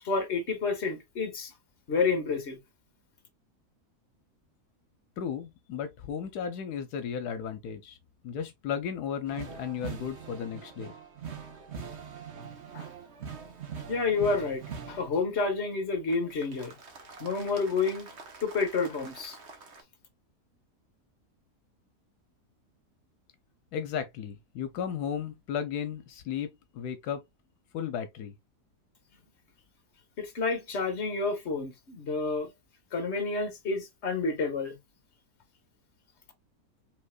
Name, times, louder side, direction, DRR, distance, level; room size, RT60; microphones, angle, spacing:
voice 1, 0.0-1.5 1.9-2.6 12.7-12.9 13.9-14.6 14.9-16.7 17.2-18.1 18.4-19.4 30.2-32.5 32.9-34.8, left 4 dB, 45° left, 1.5 m, -29 dB
voice 2, 5.2-8.0 8.2-10.9 23.7-27.2 27.7-28.3, left 8 dB, 85° left, 1.2 m, -34 dB
sound 1, 9.3-15.2 16.1-19.8, right 6 dB, 50° right, 1.2 m, -43 dB
5.5 x 3.6 x 2.3 m
omnidirectional pair, 1.7 m